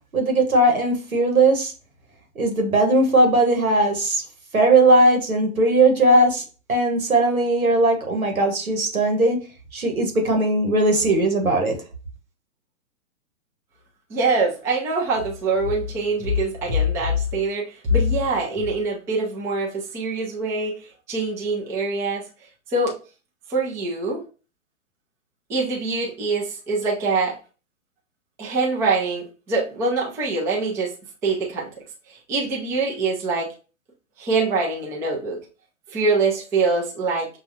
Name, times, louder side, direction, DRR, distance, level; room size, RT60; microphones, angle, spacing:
voice 1, 0.1-1.7 2.3-4.2 4.5-6.4 6.7-9.4 9.7-11.8, right 2 dB, 90° right, 3 dB, 1.3 m, -18 dB
voice 2, 14.1-20.7 21.1-22.2 22.7-22.9 23.5-24.2 25.5-27.4 28.4-30.9 31.2-31.7 32.1-33.5 34.2-35.4 35.9-37.3, right 2 dB, 5° right, -3 dB, 0.4 m, -24 dB
6.0 x 2.4 x 2.7 m, 0.35 s
figure-of-eight pair, 120°, 41 cm